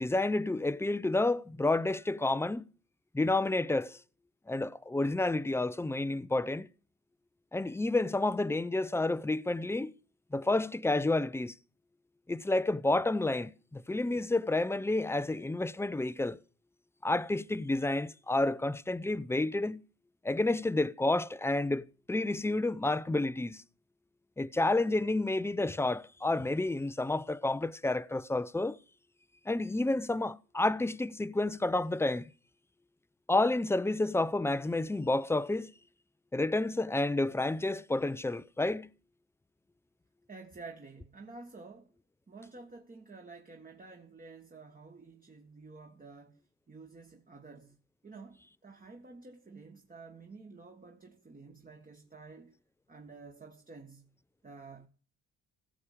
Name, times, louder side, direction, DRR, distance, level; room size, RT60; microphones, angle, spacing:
voice 1, 0.0-2.7 3.1-4.0 4.5-6.7 7.5-9.9 10.3-11.5 12.3-16.4 17.0-19.8 20.2-23.6 24.4-28.8 29.5-32.3 33.3-35.7 36.3-38.9, left 2 dB, 10° left, 0.6 m, -30 dB
voice 2, 40.3-41.9 42.3-46.4 46.7-47.8 48.0-52.5 52.9-54.1 54.4-54.9, right 3 dB, 30° right, 1.7 m, -50 dB
16.5 x 7.2 x 5.0 m
cardioid pair, 90°, 30 cm